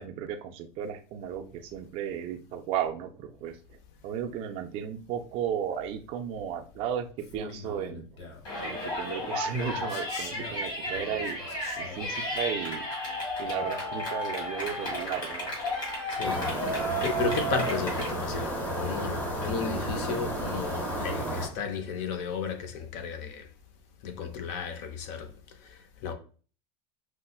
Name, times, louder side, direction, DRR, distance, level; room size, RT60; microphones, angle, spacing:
voice 1, 0.0-3.6 4.0-8.2 8.6-11.4 11.8-12.8 13.4-15.5, right 8 dB, 40° right, 0.4 m, -34 dB
Male speech man speaking, 7.2-8.5 9.8-12.2, left 4 dB, 85° left, 1.2 m, -44 dB
Yell, 8.5-18.1, equal, 30° left, 1.8 m, -33 dB
voice 2, 16.1-16.5 17.0-23.5 24.0-25.3 25.6-26.1, left 5 dB, 55° left, 0.6 m, -34 dB
sound 1, 16.2-21.5, equal, 10° left, 0.9 m, -32 dB
5.3 x 2.1 x 2.2 m
supercardioid pair, 145°, 14 cm